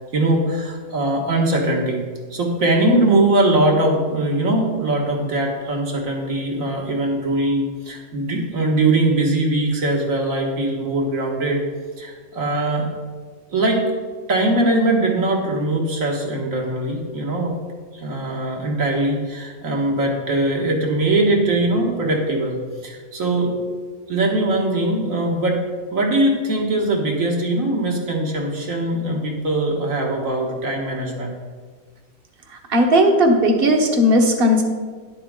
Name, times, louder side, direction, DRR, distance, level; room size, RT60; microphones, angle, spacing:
voice 1, 0.1-2.0 2.3-11.6 12.0-12.9 13.5-13.9 14.3-17.6 17.9-23.5 24.1-25.6 25.9-31.3, right 2 dB, 70° right, 0 dB, 2.1 m, -21 dB
voice 2, 32.7-34.6, equal, 45° right, 3 dB, 1.3 m, -16 dB
11.0 x 7.9 x 3.8 m, 1.5 s
omnidirectional pair, 1.5 m